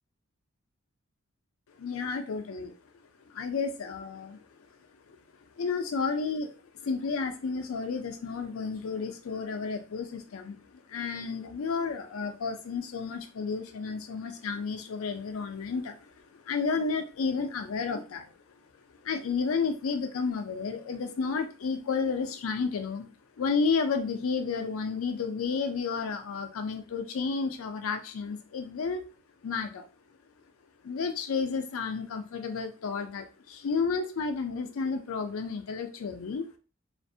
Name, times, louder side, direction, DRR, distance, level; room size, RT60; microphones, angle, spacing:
voice 1, 1.8-2.7 3.3-4.4 5.1-5.2 5.6-18.3 19.0-23.1 23.4-29.0 29.4-29.9 30.8-36.5, left 5 dB, 90° left, 8 dB, 0.4 m, -32 dB
2.4 x 2.1 x 2.6 m, 0.35 s
head